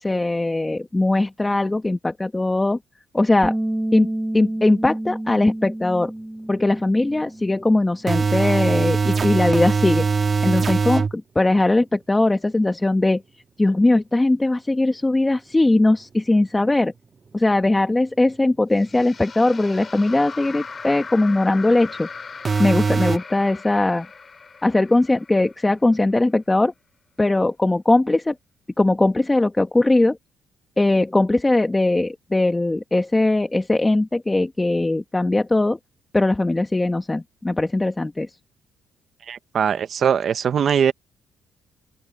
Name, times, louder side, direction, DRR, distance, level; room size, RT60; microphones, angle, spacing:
voice 1, 0.0-2.8 3.1-3.6 3.9-6.1 6.5-10.1 10.4-13.2 13.6-16.9 17.3-22.1 22.6-24.1 24.6-26.7 27.2-28.4 28.8-30.2 30.8-35.8 36.1-38.3, left 2 dB, 15° left, 1.8 m, -20 dB
Bass guitar, 3.4-7.8 8.1-9.7, right 1 dB, 10° right, 4.0 m, -30 dB
sound 1, 6.6-6.7 8.1-11.1 22.5-23.2, right 5 dB, 40° right, 1.8 m, -21 dB
sound 2, 18.8-26.0, left 5 dB, 35° left, 4.8 m, -39 dB
voice 2, 39.3-40.9, right 7 dB, 55° right, 1.1 m, -21 dB
open air
cardioid pair, 90°, 0 cm